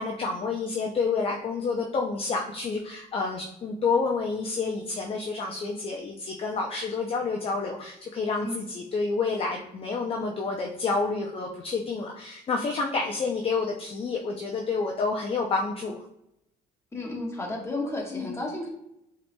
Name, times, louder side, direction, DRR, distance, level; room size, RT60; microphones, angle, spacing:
voice 1, 0.0-16.0 18.1-18.4, left 4 dB, 35° left, 1 dB, 0.5 m, -29 dB
voice 2, 16.9-18.7, left 2 dB, 15° left, -1 dB, 1.1 m, -32 dB
5.2 x 2.9 x 2.2 m, 0.79 s
cardioid pair, 110°, 17 cm